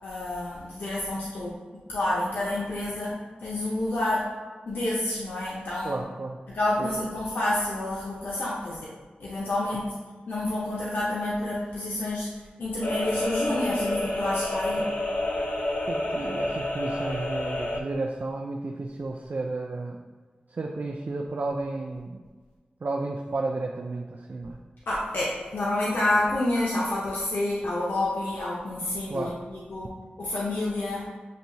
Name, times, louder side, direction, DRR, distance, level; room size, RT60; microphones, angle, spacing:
voice 1, 0.0-3.1 3.4-4.2 4.7-6.0 6.5-8.9 9.2-9.9 10.3-14.8 24.9-29.9 30.2-31.0, left 1 dB, 90° left, -6 dB, 0.6 m, -29 dB
voice 2, 5.8-6.4 6.8-7.0 14.8-14.9 15.9-20.0 20.5-22.2 22.8-24.6 29.1-29.3, right 3 dB, 60° right, 1 dB, 0.4 m, -32 dB
sound 1, 12.8-17.8, left 1 dB, 50° left, 0.7 m, -29 dB
7.3 x 2.7 x 2.7 m, 1.4 s
cardioid pair, 45°, 3 cm